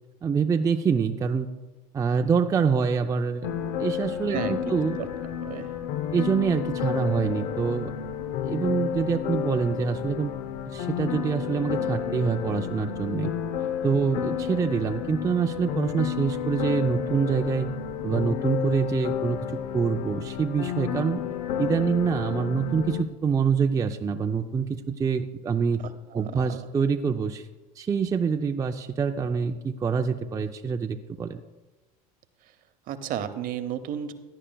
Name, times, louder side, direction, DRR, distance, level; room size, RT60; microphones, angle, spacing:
voice 1, 0.2-1.5 1.9-3.5 3.8-5.0 6.1-7.9 8.4-10.3 10.7-13.3 13.8-17.7 18.0-21.2 21.6-25.8 26.1-27.5 27.8-31.4, right 6 dB, 20° right, 5 dB, 0.4 m, -26 dB
sound 1, 3.4-23.0, left 9 dB, 70° left, 0.7 m, -31 dB
voice 2, 26.1-26.6 32.9-34.1, right 9 dB, 50° right, 11 dB, 0.9 m, -32 dB
16.0 x 9.8 x 2.3 m, 1.2 s
supercardioid pair, 110°, 19 cm